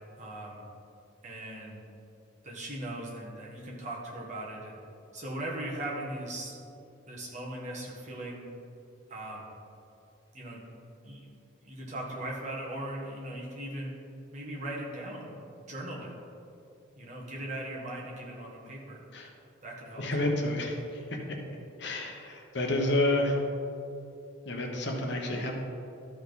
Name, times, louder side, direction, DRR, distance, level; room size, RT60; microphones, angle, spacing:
voice 1, 0.2-0.6 1.2-1.8 2.4-4.8 5.1-6.6 7.1-8.4 9.1-9.5 10.3-10.6 11.0-11.3 11.6-13.9 14.3-16.1 17.0-19.0 19.6-20.0, right 1 dB, 35° right, -4 dB, 1.6 m, -39 dB
voice 2, 20.0-21.2 21.8-23.4 24.4-25.5, left 1 dB, 55° left, 1 dB, 1.1 m, -29 dB
13.0 x 5.1 x 4.1 m, 2.7 s
head